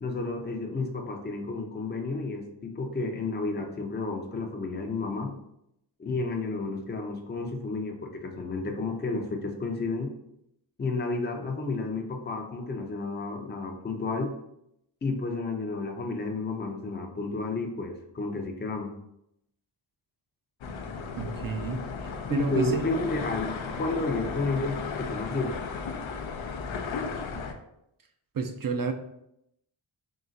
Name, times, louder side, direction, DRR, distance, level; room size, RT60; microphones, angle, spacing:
voice 1, 0.0-5.3 6.0-10.1 10.8-14.3 15.0-18.9 22.3-25.6, left 3 dB, 20° left, 2 dB, 0.6 m, -31 dB
sound 1, 20.6-27.5, left 5 dB, 75° left, 0.6 m, -35 dB
voice 2, 21.2-22.9 28.3-28.9, right 4 dB, 45° right, 6 dB, 0.5 m, -30 dB
3.8 x 2.4 x 3.9 m, 0.80 s
cardioid pair, 70°, 48 cm